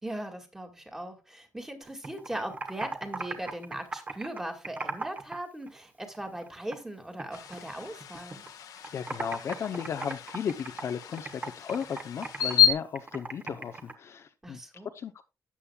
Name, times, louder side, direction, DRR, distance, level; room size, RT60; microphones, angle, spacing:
voice 1, 0.0-8.4 14.4-14.9, right 1 dB, 10° right, 1.9 m, -39 dB
Computer keyboard, 1.8-5.4 5.7-6.9 7.2-8.5 8.8-13.9, right 3 dB, 25° right, 1.2 m, -38 dB
sound 1, 7.3-12.7, left 10 dB, 90° left, 1.4 m, -30 dB
voice 2, 8.9-14.6 14.9-15.2, left 7 dB, 50° left, 0.7 m, -35 dB
13.0 x 8.5 x 2.3 m
wide cardioid pair, 155°, 6 cm